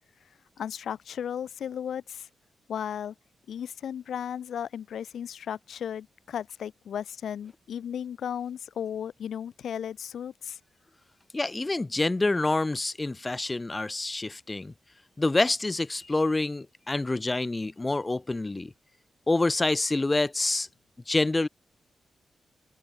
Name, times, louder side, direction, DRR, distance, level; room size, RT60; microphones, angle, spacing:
voice 1, 0.6-2.3 2.7-3.1 3.5-10.6, left 9 dB, 80° left, 3.8 m, -35 dB
voice 2, 11.3-14.7 15.2-18.7 19.3-20.7 21.1-21.5, left 2 dB, 25° left, 1.4 m, -27 dB
open air
cardioid pair, 80°, 0 cm